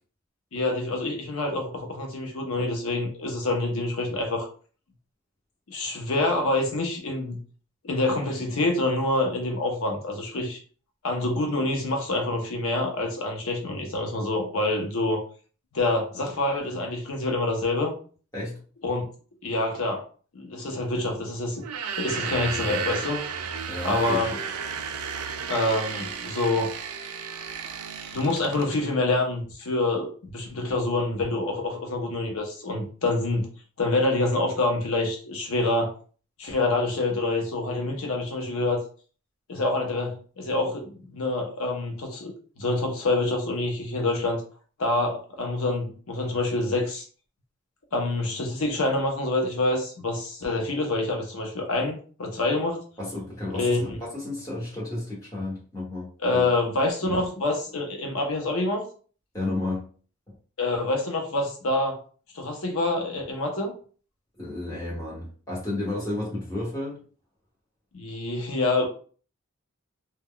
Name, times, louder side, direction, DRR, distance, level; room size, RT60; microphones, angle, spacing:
voice 1, 0.5-4.5 5.7-7.4 7.8-10.6 11.0-15.2 15.7-17.9 18.8-19.1 19.4-20.0 20.3-21.6 22.0-23.2 23.8-24.4 25.5-26.7 28.1-33.5 33.8-35.9 36.4-38.8 39.5-44.4 44.8-47.0 47.9-52.8 53.5-54.0 56.2-58.8 60.6-62.0 62.3-63.7 67.9-68.9, left 2 dB, 70° left, 1 dB, 0.6 m, -26 dB
sound 1, 21.6-28.8, right 6 dB, 85° right, 0.4 m, -33 dB
voice 2, 23.7-24.3 53.0-56.5 59.3-59.9 60.3-60.4 64.4-67.0, left 2 dB, 15° left, -6 dB, 1.0 m, -32 dB
2.2 x 2.1 x 3.6 m, 0.41 s
head